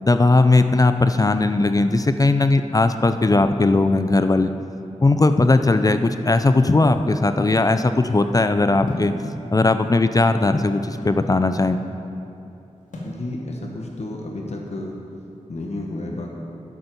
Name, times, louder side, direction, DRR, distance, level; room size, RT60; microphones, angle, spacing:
voice 1, 0.0-4.5 5.0-9.1 9.5-11.8, left 2 dB, 30° left, 9 dB, 0.4 m, -18 dB
sound 1, 8.9-9.2 10.1-11.3 12.9-13.2, left 1 dB, 80° left, 2.2 m, -33 dB
voice 2, 13.0-15.0 15.5-16.3, left 2 dB, 60° left, 0 dB, 1.2 m, -31 dB
12.0 x 8.1 x 5.3 m, 2.8 s
wide cardioid pair, 75°, 13 cm